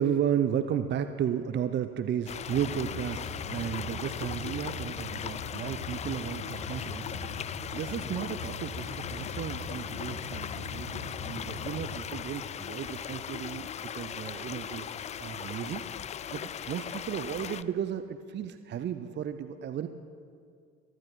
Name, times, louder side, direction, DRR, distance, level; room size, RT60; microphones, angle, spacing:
voice 1, 0.0-14.9 15.2-15.8 16.3-19.9, right 9 dB, 25° right, 10 dB, 0.7 m, -34 dB
sound 1, 2.3-17.6, left 9 dB, 20° left, 0.4 m, -39 dB
sound 2, 2.5-11.9, left 3 dB, 65° left, 2.7 m, -41 dB
23.0 x 14.5 x 4.2 m, 2.3 s
figure-of-eight pair, 60°, 40 cm